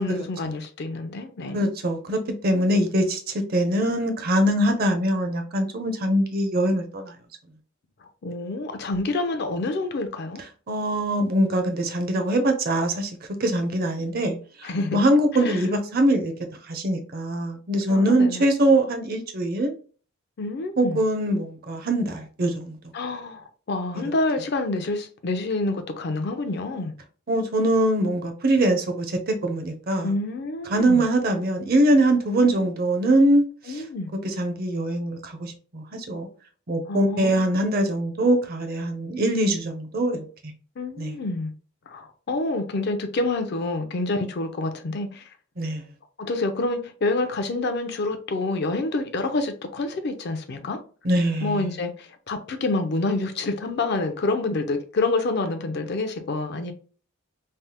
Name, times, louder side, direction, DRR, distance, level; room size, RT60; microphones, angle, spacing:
voice 1, 0.0-1.7 8.2-10.4 14.6-15.0 15.4-15.6 17.9-18.5 20.4-21.0 22.9-26.9 30.0-31.0 33.7-34.1 36.9-37.4 40.8-41.5 41.9-45.2 46.2-50.8 51.4-56.7, left 2 dB, 50° left, 0.4 m, -27 dB
voice 2, 1.5-3.2 3.5-7.1 10.7-16.3 16.7-19.7 20.8-22.8 27.3-30.1 30.7-33.8 34.2-36.3 36.7-40.2 41.0-41.2 45.6-45.8 51.0-51.7, right 1 dB, 45° right, 0.5 m, -23 dB
3.3 x 2.0 x 2.8 m
head